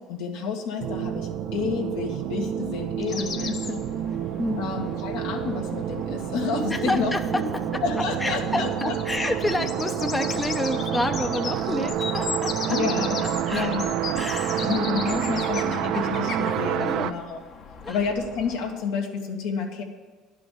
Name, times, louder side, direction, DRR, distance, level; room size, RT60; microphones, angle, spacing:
voice 1, 0.1-3.6 4.6-7.4 7.8-9.3 12.7-13.2 13.5-13.9 14.6-17.4 17.9-19.8, left 5 dB, 80° left, 1 dB, 1.7 m, -29 dB
sound 1, 0.8-17.1, right 10 dB, 70° right, 0.5 m, -28 dB
sound 2, 3.1-18.8, left 6 dB, 55° left, 1.2 m, -38 dB
voice 2, 3.1-3.8 4.4-4.6 6.7-7.8 8.2-12.8 13.2-13.7 14.1-14.7 16.8-17.1 17.8-18.0, left 2 dB, 15° left, 6 dB, 0.7 m, -29 dB
11.0 x 5.7 x 8.2 m, 1.4 s
hypercardioid pair, 75°, 0 cm